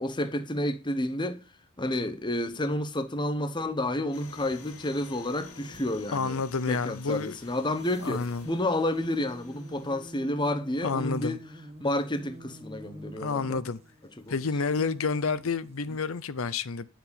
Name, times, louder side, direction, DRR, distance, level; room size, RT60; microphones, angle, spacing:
voice 1, 0.0-1.4 1.8-11.4 11.8-13.6 14.2-14.3, left 1 dB, 20° left, 1.0 m, -30 dB
sound 1, 4.1-10.1, left 4 dB, 90° left, 3.2 m, -51 dB
sound 2, 4.6-4.8 5.3-6.1 7.8-16.2, right 1 dB, 30° right, 1.5 m, -47 dB
voice 2, 6.1-7.4 8.0-8.5 10.8-11.4 13.2-13.8 14.3-16.9, left 4 dB, 65° left, 0.7 m, -29 dB
10.0 x 7.3 x 5.2 m
head